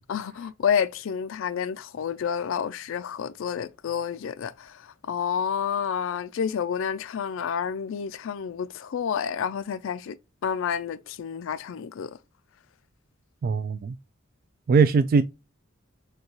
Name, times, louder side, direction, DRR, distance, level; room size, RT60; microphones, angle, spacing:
voice 1, 0.1-10.2 10.4-12.2, left 7 dB, 65° left, 0.4 m, -29 dB
voice 2, 13.4-14.0 14.7-15.2, right 5 dB, 45° right, 0.3 m, -20 dB
6.3 x 2.3 x 2.9 m
head